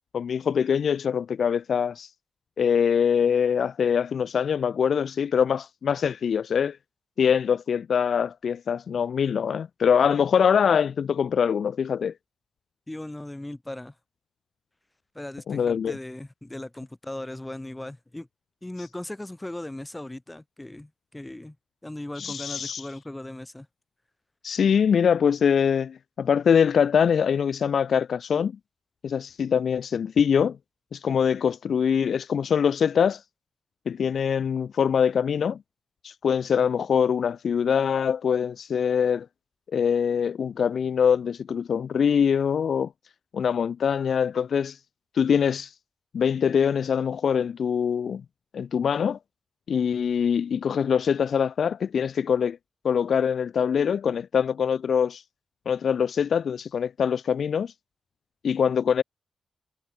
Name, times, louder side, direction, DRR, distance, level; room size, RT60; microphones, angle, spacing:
voice 1, 0.1-2.1 2.6-6.8 7.2-12.1 15.5-16.0 22.2-22.8 24.4-28.5 29.0-30.6 30.9-33.2 33.9-35.6 36.0-39.3 39.7-42.9 43.3-44.8 45.2-45.7 46.1-48.2 48.5-49.2 49.7-52.6 52.8-55.2 55.7-57.7 58.4-59.0, left 7 dB, 75° left, 0.5 m, -23 dB
voice 2, 12.9-13.9 15.1-18.3 18.6-21.6 21.8-23.7, left 1 dB, 10° left, 2.1 m, -38 dB
wide cardioid pair, 115°, 0 cm